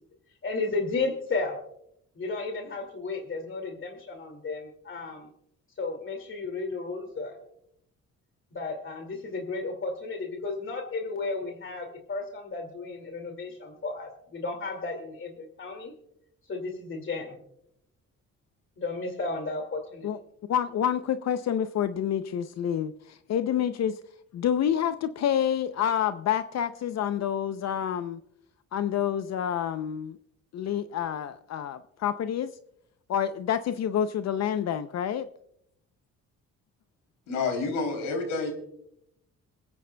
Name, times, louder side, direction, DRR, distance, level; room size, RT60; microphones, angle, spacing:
voice 1, 0.4-1.6 2.2-5.3 5.8-7.4 8.5-15.9 16.4-17.4 18.8-20.1, left 3 dB, 40° left, 3 dB, 2.2 m, -33 dB
voice 2, 20.0-24.0 24.3-28.2 28.7-30.2 30.5-32.5 33.1-35.3, left 9 dB, 60° left, 11 dB, 0.6 m, -28 dB
voice 3, 37.3-38.5, left 4 dB, 90° left, 4 dB, 3.2 m, -29 dB
28.0 x 9.3 x 2.2 m, 0.75 s
cardioid pair, 90°, 30 cm